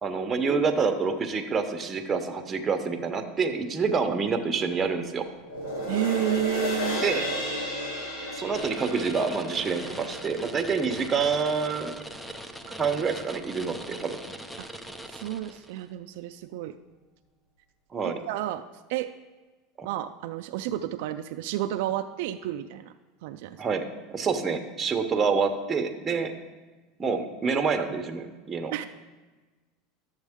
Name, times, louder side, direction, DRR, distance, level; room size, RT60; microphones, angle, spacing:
voice 1, 0.0-5.2 7.0-7.2 8.3-11.9 12.7-14.2 17.9-18.2 19.8-19.9 23.6-23.8 24.1-26.3 27.0-28.7, right 5 dB, 20° right, 5 dB, 0.8 m, -27 dB
sound 1, 5.4-12.0 12.4-12.5, left 1 dB, 85° left, 3.1 m, -34 dB
voice 2, 5.9-7.0 14.6-14.7 15.1-16.8 18.0-18.6 18.9-19.1 19.8-22.9 23.2-23.6 28.7-28.8, right 12 dB, 70° right, 8 dB, 0.4 m, -31 dB
sound 2, 8.5-15.8, right 1 dB, 5° left, 0.5 m, -41 dB
12.0 x 7.3 x 3.6 m, 1.3 s
supercardioid pair, 140°, 0 cm